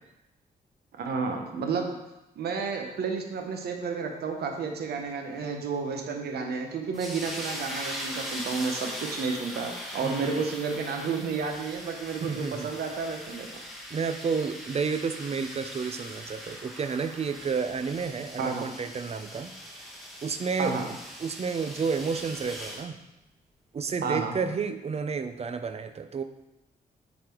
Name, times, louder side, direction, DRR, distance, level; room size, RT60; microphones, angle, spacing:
voice 1, 1.0-2.0 2.4-13.5 18.4-18.7 20.6-20.9 24.0-24.4, right 5 dB, 85° right, 3 dB, 1.0 m, -31 dB
sound 1, 6.9-22.9, equal, ahead, 1.5 m, -40 dB
voice 2, 10.0-10.4 12.3-12.7 13.9-19.5 20.2-20.9 21.2-23.0 23.7-26.2, right 5 dB, 40° right, 9 dB, 0.6 m, -31 dB
8.5 x 4.2 x 4.5 m, 0.97 s
cardioid pair, 95°, 16 cm